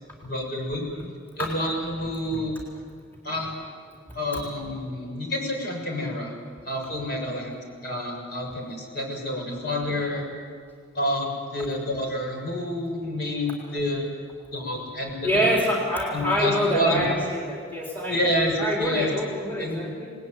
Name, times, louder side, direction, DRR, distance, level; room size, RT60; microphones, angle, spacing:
voice 1, 0.2-0.9 1.4-2.5 3.2-3.5 4.1-6.3 6.6-7.5 7.8-10.3 10.9-14.0 14.5-15.5 16.1-17.0 18.0-19.1 19.6-19.9, left 1 dB, 55° left, 0 dB, 7.1 m, -28 dB
voice 2, 15.2-20.1, equal, 10° left, -3 dB, 4.0 m, -26 dB
28.5 x 20.0 x 9.5 m, 2.1 s
head